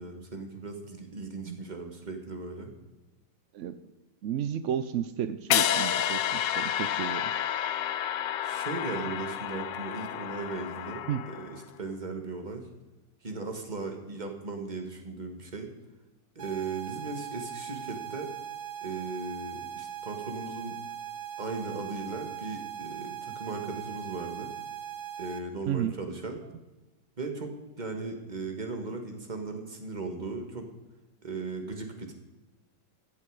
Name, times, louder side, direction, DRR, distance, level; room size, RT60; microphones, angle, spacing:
voice 1, 0.0-2.7 8.4-12.6 13.2-15.7 16.3-18.3 18.8-20.7 21.4-24.5 25.2-26.4 27.2-30.6 31.2-32.1, right 3 dB, 25° right, 4 dB, 1.6 m, -37 dB
voice 2, 4.2-7.3 11.1-11.2 25.7-25.9, right 9 dB, 80° right, 12 dB, 0.6 m, -32 dB
sound 1, 5.5-11.6, left 11 dB, 80° left, 1.3 m, -30 dB
sound 2, 16.4-25.4, right 10 dB, 60° right, 1.4 m, -40 dB
14.5 x 8.4 x 4.8 m, 1.1 s
omnidirectional pair, 1.9 m